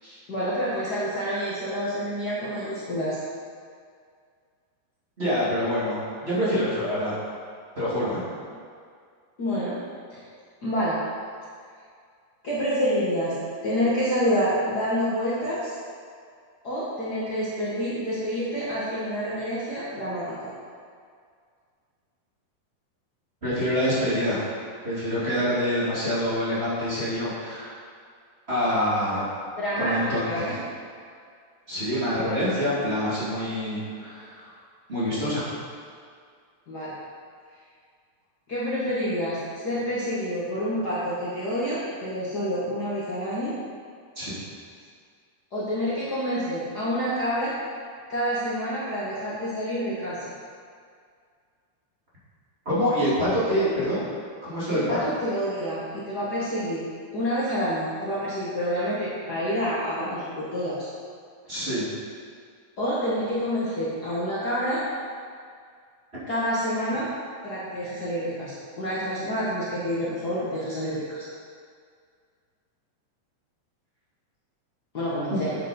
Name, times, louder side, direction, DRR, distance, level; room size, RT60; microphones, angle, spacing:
voice 1, 0.3-3.2 9.4-9.8 10.1-10.2 10.6-11.0 12.4-13.4 13.6-15.7 16.6-20.5 29.6-30.5 36.7-36.9 38.5-43.5 45.5-47.5 48.1-50.2 54.7-56.8 57.1-60.9 62.8-64.8 66.3-67.1 67.4-71.2 74.9-75.6, equal, 85° left, -9 dB, 0.8 m, -28 dB
voice 2, 5.2-7.2 7.8-8.2 23.4-24.4 24.8-27.7 28.5-29.3 29.8-30.6 31.7-34.5 34.9-35.4 44.2-44.4 52.6-54.0 54.4-55.1 61.5-61.9, equal, 15° right, -10 dB, 2.5 m, -26 dB
9.0 x 7.7 x 5.2 m, 2.1 s
omnidirectional pair, 4.7 m